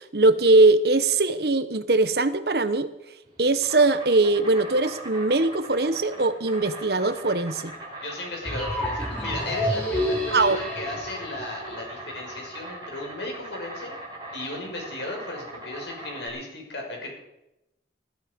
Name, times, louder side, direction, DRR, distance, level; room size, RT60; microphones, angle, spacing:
voice 1, 0.0-2.9 3.4-7.7 10.3-10.6, right 2 dB, 60° right, 12 dB, 1.1 m, -21 dB
Insect, 3.2-16.3, right 1 dB, 25° right, 5.0 m, -41 dB
voice 2, 8.0-13.9 14.3-17.1, left 2 dB, 75° left, 1 dB, 5.7 m, -35 dB
sound 1, 8.4-12.4, equal, 10° left, 5.1 m, -29 dB
20.5 x 12.5 x 5.3 m, 0.90 s
head